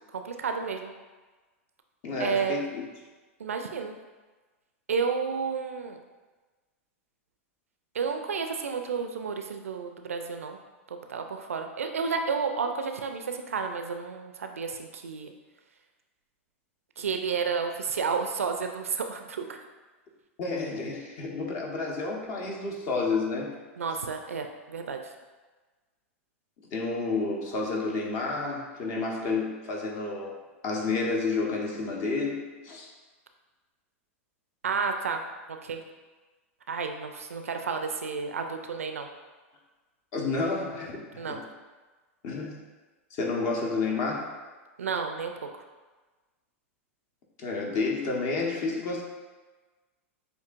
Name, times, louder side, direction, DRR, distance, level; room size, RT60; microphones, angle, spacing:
voice 1, 0.1-0.9 2.2-2.6 3.4-3.9 4.9-6.0 7.9-10.6 10.9-15.3 17.0-19.6 23.8-25.1 34.6-35.2 35.6-35.8 36.7-39.1 41.2-41.4 44.8-45.5, right 5 dB, 85° right, 5 dB, 0.4 m, -31 dB
voice 2, 2.0-2.8 20.4-23.6 26.7-30.4 30.6-32.9 40.1-41.4 42.2-42.6 43.1-44.3 47.4-49.0, left 3 dB, 45° left, -1 dB, 1.0 m, -30 dB
6.7 x 2.7 x 2.5 m, 1.3 s
hypercardioid pair, 100°, 7 cm